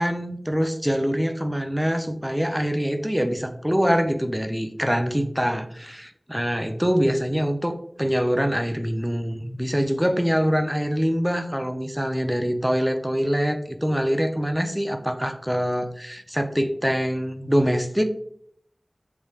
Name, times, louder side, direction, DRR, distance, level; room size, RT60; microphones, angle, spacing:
voice 1, 0.0-18.0, equal, 5° right, 7 dB, 0.3 m, -24 dB
3.2 x 2.3 x 3.0 m, 0.66 s
wide cardioid pair, 45°, 0 cm